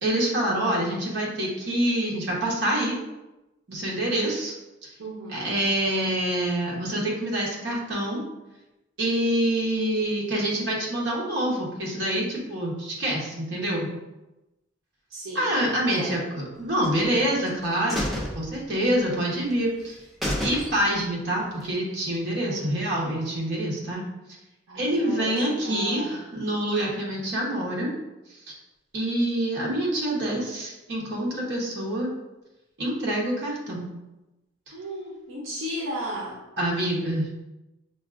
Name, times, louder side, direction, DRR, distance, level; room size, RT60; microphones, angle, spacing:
voice 1, 0.0-3.0 3.7-4.5 4.8-4.9 5.3-8.2 9.0-13.9 15.3-18.0 18.3-20.0 20.4-24.0 24.8-27.9 28.5-28.6 28.9-32.1 32.8-33.9 36.6-37.3, right 1 dB, 60° right, -4 dB, 1.0 m, -26 dB
voice 2, 5.0-5.6 15.1-15.5 15.9-16.1 22.4-22.8 24.7-26.2 34.7-36.4, right 1 dB, 85° right, -4 dB, 0.7 m, -35 dB
sound 1, 16.8-17.5 17.9-19.2 19.5-19.6 19.9-20.0 20.2-21.1 21.5-21.6, equal, ahead, 0.5 m, -31 dB
6.0 x 2.3 x 2.4 m, 1.0 s
head